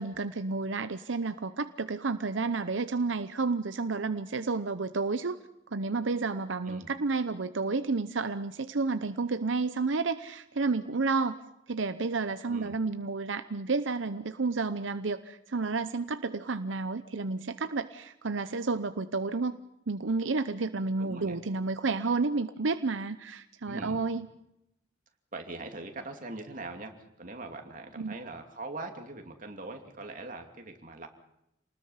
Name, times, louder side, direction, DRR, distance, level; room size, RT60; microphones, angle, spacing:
voice 1, 0.0-5.4 5.7-11.4 11.7-19.6 19.9-24.3 28.0-28.1, right 4 dB, 85° right, 11 dB, 0.8 m, -31 dB
voice 2, 12.5-12.8 21.0-21.4 23.7-24.0 25.3-31.1, right 2 dB, 45° right, 4 dB, 2.7 m, -42 dB
28.0 x 20.0 x 5.7 m, 0.81 s
head